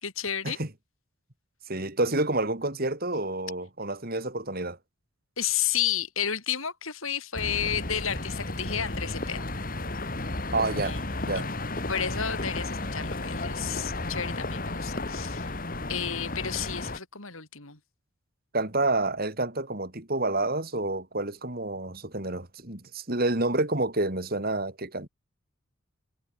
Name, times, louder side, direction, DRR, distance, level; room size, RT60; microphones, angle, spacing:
voice 1, 0.0-0.6 5.4-9.5 10.8-11.0 11.3-11.5 11.9-15.6 15.9-17.8, left 8 dB, 70° left, 5.6 m, -32 dB
voice 2, 1.7-4.8 10.5-11.5 18.5-25.1, right 2 dB, 45° right, 3.2 m, -29 dB
sound 1, 7.3-17.0, left 2 dB, 40° left, 2.5 m, -33 dB
head